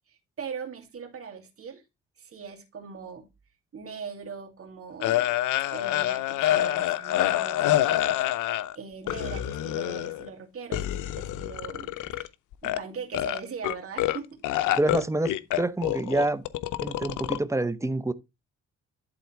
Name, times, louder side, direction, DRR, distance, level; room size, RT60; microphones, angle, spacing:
voice 1, 0.1-1.8 2.2-3.3 3.7-5.3 5.7-12.3 12.6-14.3, right 6 dB, 50° right, 2.5 m, -40 dB
sound 1, 5.0-8.7 9.1-10.3 10.7-12.3 12.5-12.8 13.1-14.2 14.4-17.4, left 13 dB, 85° left, 0.7 m, -27 dB
voice 2, 14.8-16.4 16.8-18.1, right 2 dB, 10° right, 0.8 m, -27 dB
11.5 x 3.9 x 4.5 m
cardioid pair, 90°, 30 cm